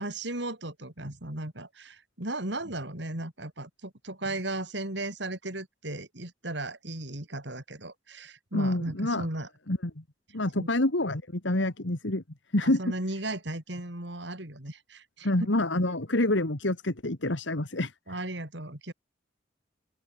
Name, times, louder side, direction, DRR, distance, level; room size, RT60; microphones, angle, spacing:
voice 1, 0.0-9.5 10.6-10.7 12.6-15.3 15.9-16.0 18.1-18.9, right 2 dB, 65° right, 4.3 m, -36 dB
voice 2, 8.5-9.3 9.7-9.9 10.3-12.2 12.5-12.8 15.2-17.9, left 1 dB, 75° left, 2.1 m, -27 dB
head